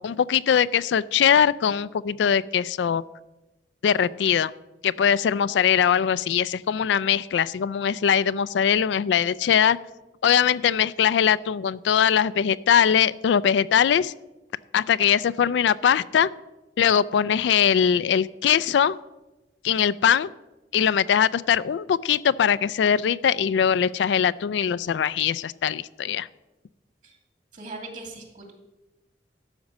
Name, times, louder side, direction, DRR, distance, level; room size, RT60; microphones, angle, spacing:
voice 1, 0.0-3.0 3.8-4.5 4.8-9.8 10.2-14.1 14.7-16.3 16.8-19.0 19.6-20.3 20.7-26.3, left 8 dB, 80° left, 17 dB, 0.3 m, -21 dB
voice 2, 27.5-28.5, right 2 dB, 45° right, 3 dB, 2.3 m, -39 dB
12.5 x 5.2 x 7.2 m, 1.0 s
head